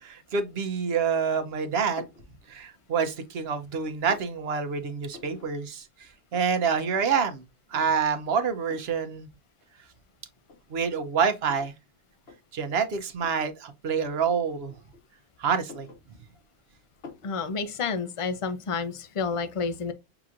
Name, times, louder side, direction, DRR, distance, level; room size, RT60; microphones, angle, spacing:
voice 1, 0.0-2.1 2.5-5.9 6.3-7.4 7.7-9.3 10.7-11.7 12.5-14.7 15.4-15.9, right 6 dB, 75° right, 1.0 m, -27 dB
sound 1, 2.0-2.3 2.8-3.5 3.7-4.3 5.1-5.5 5.8-5.9 6.1-6.7 7.1-7.2 7.7-8.2 8.7-9.0 9.8-9.9 10.4-11.8 12.2-12.4 13.2-13.5 14.5-15.2 15.5-16.5 17.0-17.3, left 4 dB, 75° left, 1.2 m, -47 dB
voice 2, 17.2-19.9, left 5 dB, 40° left, 0.6 m, -30 dB
5.9 x 2.9 x 2.4 m
omnidirectional pair, 1.1 m